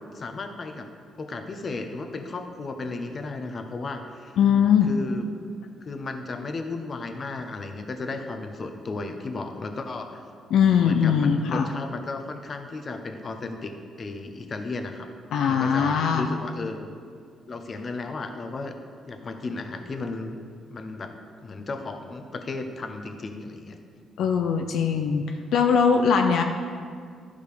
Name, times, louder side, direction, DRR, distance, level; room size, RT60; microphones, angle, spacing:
voice 1, 0.1-0.9 1.2-4.4 4.8-5.3 5.8-10.2 10.8-15.1 15.4-16.9 17.5-18.7 19.1-20.4 20.7-21.1 21.4-23.7, left 3 dB, 40° left, 6 dB, 0.9 m, -34 dB
voice 2, 4.4-4.9 10.5-11.7 15.3-16.3 24.2-25.2 25.5-26.4, left 7 dB, 75° left, 4 dB, 0.5 m, -21 dB
11.5 x 5.1 x 5.0 m, 2.1 s
cardioid pair, 90°, 0 cm